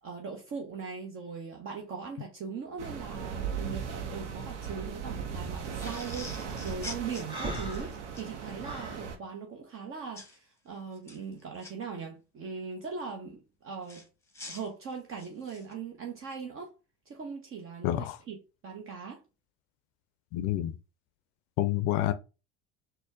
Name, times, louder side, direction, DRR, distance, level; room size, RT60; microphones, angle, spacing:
voice 1, 0.0-14.0 14.5-16.7 17.1-19.2, right 5 dB, 40° right, 0.8 m, -40 dB
sound 1, 2.8-9.2, right 6 dB, 90° right, 0.7 m, -38 dB
sound 2, 5.8-8.3 10.2-10.4 10.9-11.7 13.9-15.7, left 2 dB, 10° left, 1.1 m, -45 dB
Breathing, 7.3-9.0, right 2 dB, 15° right, 1.5 m, -38 dB
voice 2, 17.8-18.2 20.3-20.7 21.6-22.1, left 13 dB, 60° left, 0.5 m, -28 dB
4.2 x 2.2 x 3.4 m
hypercardioid pair, 80°, 35 cm